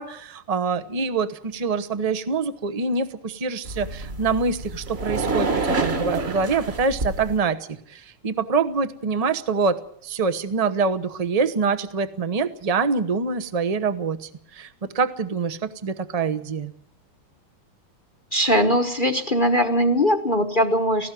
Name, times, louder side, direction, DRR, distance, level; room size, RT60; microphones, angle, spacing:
voice 1, 0.0-7.6 7.9-16.7, right 4 dB, 65° right, 11 dB, 0.3 m, -25 dB
sound 1, 3.6-7.4, right 3 dB, 35° right, 1.4 m, -27 dB
voice 2, 18.3-21.1, equal, 35° left, 7 dB, 0.8 m, -20 dB
18.0 x 16.0 x 9.2 m, 0.67 s
omnidirectional pair, 2.4 m